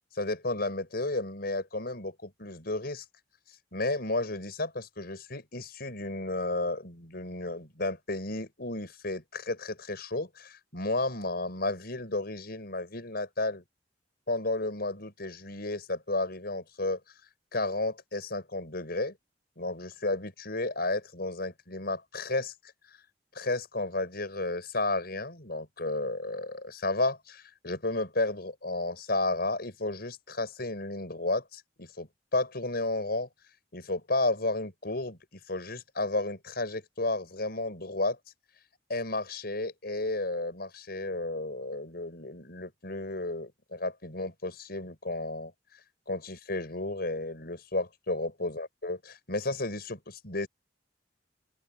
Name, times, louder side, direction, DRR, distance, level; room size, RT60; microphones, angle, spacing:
voice 1, 0.1-3.0 3.7-13.6 14.3-17.0 17.5-19.2 19.6-22.5 23.3-33.3 33.7-38.2 38.9-45.5 46.1-50.5, left 2 dB, 55° left, 6.6 m, -32 dB
open air
head